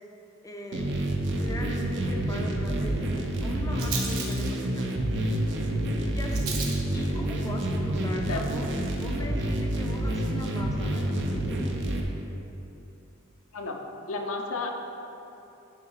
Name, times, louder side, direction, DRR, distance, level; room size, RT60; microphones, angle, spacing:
voice 1, 0.4-4.9 6.1-6.6 6.9-8.7 9.0-11.1, left 1 dB, 15° left, 0 dB, 0.6 m, -39 dB
sound 1, 0.7-12.0, right 1 dB, 60° right, 0.8 m, -28 dB
Rattle, 2.5-10.7, right 5 dB, 85° right, 1.0 m, -42 dB
voice 2, 14.1-14.7, left 3 dB, 70° left, 2 dB, 0.7 m, -32 dB
9.8 x 3.7 x 4.9 m, 3.0 s
head